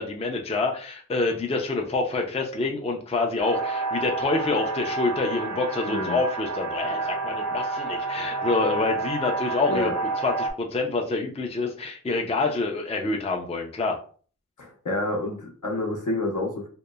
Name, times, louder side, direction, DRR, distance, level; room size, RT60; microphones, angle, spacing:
voice 1, 0.0-9.9 10.2-14.0, left 3 dB, 20° left, 1 dB, 0.4 m, -27 dB
sound 1, 3.4-10.5, right 3 dB, 55° right, 0.5 m, -29 dB
voice 2, 5.8-6.2 9.7-9.9 14.6-16.7, left 2 dB, 65° left, 1 dB, 0.7 m, -28 dB
2.8 x 2.0 x 2.2 m, 0.42 s
wide cardioid pair, 55°, 33 cm